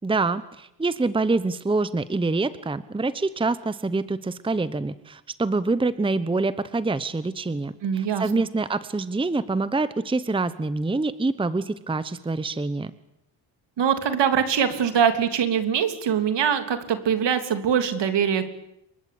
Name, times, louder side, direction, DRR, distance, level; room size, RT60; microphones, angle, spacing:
voice 1, 0.0-12.9, right 3 dB, 10° right, 15 dB, 1.0 m, -26 dB
voice 2, 7.8-8.4 13.8-18.5, right 8 dB, 65° right, 9 dB, 3.3 m, -23 dB
27.5 x 23.0 x 8.7 m, 0.82 s
cardioid pair, 115°, 45 cm